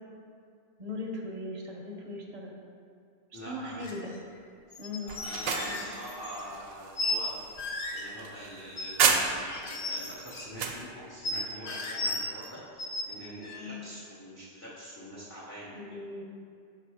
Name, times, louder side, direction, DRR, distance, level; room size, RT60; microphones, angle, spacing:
voice 1, 0.8-2.6 3.3-4.1 4.8-5.2 5.6-5.8 13.5-13.8 15.7-16.2, left 2 dB, 40° right, -1 dB, 0.6 m, -39 dB
voice 2, 3.3-3.8 5.0-7.4 7.9-15.8, equal, 15° left, -8 dB, 0.6 m, -44 dB
sound 1, 3.8-4.0 4.7-6.4 7.0-7.3 7.6-8.0 8.8-9.1 9.4-10.5 11.2-12.5 12.8-13.0 13.4-13.5, left 2 dB, 60° left, 0.9 m, -35 dB
sound 2, 5.1-9.7 10.1-10.8, right 6 dB, 85° right, 1.0 m, -31 dB
5.9 x 3.5 x 4.8 m, 2.4 s
omnidirectional pair, 1.3 m